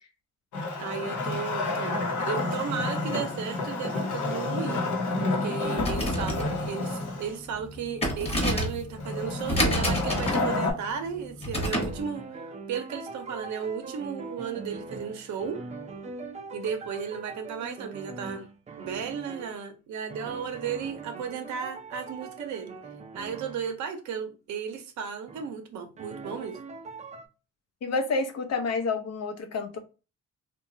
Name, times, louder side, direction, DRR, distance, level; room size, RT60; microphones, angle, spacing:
Wood, 0.5-7.3 9.0-10.7, left 2 dB, 80° left, 1.0 m, -29 dB
voice 1, 0.8-4.8 5.2-15.6 16.5-18.5 18.8-22.7 23.1-26.6, right 7 dB, 70° right, 0.7 m, -35 dB
sound 1, 5.7-12.0, equal, 20° left, 1.0 m, -30 dB
sound 2, 11.1-11.3 11.6-19.6 20.1-23.8 25.3-25.5 26.0-27.3, right 4 dB, 25° right, 0.5 m, -42 dB
voice 2, 27.8-29.8, left 4 dB, 55° left, 0.7 m, -29 dB
2.9 x 2.3 x 2.6 m
cardioid pair, 90°, 30 cm